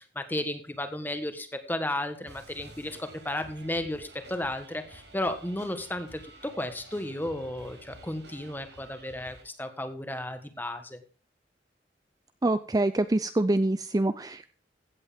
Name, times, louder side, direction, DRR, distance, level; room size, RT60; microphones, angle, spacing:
voice 1, 0.0-11.0, left 1 dB, 10° left, 8 dB, 1.5 m, -34 dB
sound 1, 2.2-9.4, right 2 dB, 75° right, 6.5 m, -51 dB
voice 2, 12.4-14.5, right 2 dB, 20° right, 12 dB, 0.5 m, -25 dB
16.0 x 8.3 x 3.6 m, 0.41 s
head